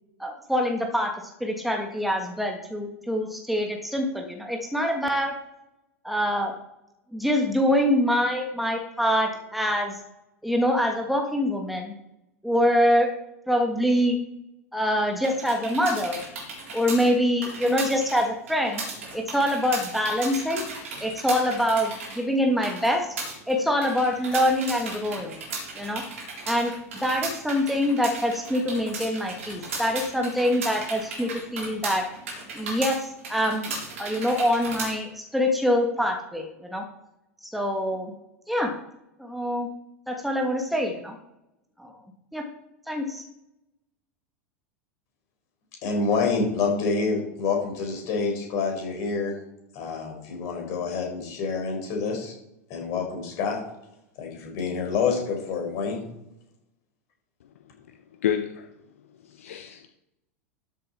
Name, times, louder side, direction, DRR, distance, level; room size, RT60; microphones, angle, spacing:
voice 1, 0.2-1.1 1.4-5.4 6.0-6.5 7.1-10.0 10.4-11.9 12.4-13.1 13.5-14.2 14.7-16.2 16.7-18.8 19.1-20.7 21.0-23.1 23.5-25.4 25.7-26.0 26.4-32.1 32.5-33.7 34.0-36.8 37.4-38.1 38.5-38.7 39.2-39.7 40.1-41.2 41.8-42.0 42.3-42.5 42.9-43.2, equal, ahead, 2 dB, 1.5 m, -25 dB
sound 1, 15.2-34.9, right 3 dB, 65° right, 3.8 m, -36 dB
voice 2, 45.8-49.3 49.7-52.3 52.7-53.6 54.2-56.0, left 4 dB, 45° left, 1 dB, 4.2 m, -27 dB
voice 3, 58.2-58.7 59.2-59.9, left 9 dB, 65° left, 7 dB, 0.8 m, -29 dB
13.0 x 7.3 x 4.3 m, 0.89 s
figure-of-eight pair, 85°, 8 cm